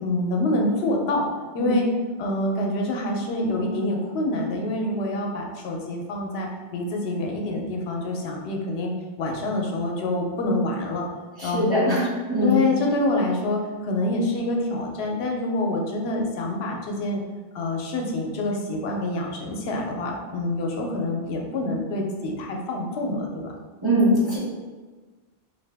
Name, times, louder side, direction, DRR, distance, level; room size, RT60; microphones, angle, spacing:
voice 1, 0.0-1.3 1.5-1.9 2.2-11.1 11.4-12.0 12.4-17.2 17.5-23.5, left 2 dB, 85° left, 1 dB, 0.8 m, -26 dB
voice 2, 11.4-12.6 23.8-24.4, equal, 25° right, -9 dB, 1.1 m, -22 dB
2.7 x 2.7 x 3.3 m, 1.4 s
omnidirectional pair, 1.0 m